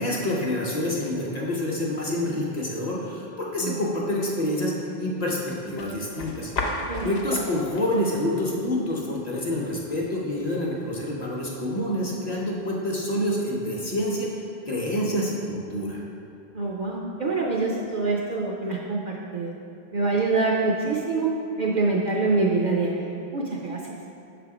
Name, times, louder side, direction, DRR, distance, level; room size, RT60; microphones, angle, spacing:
voice 1, 0.0-4.7 5.0-6.5 7.0-14.3 14.7-16.0, left 1 dB, 40° left, -3 dB, 0.8 m, -27 dB
sound 1, 5.5-12.8, left 2 dB, 75° left, 1.0 m, -38 dB
voice 2, 16.5-19.6 19.9-21.3 21.6-23.8, right 3 dB, 55° right, -2 dB, 0.5 m, -25 dB
6.2 x 3.4 x 4.8 m, 2.6 s
omnidirectional pair, 1.1 m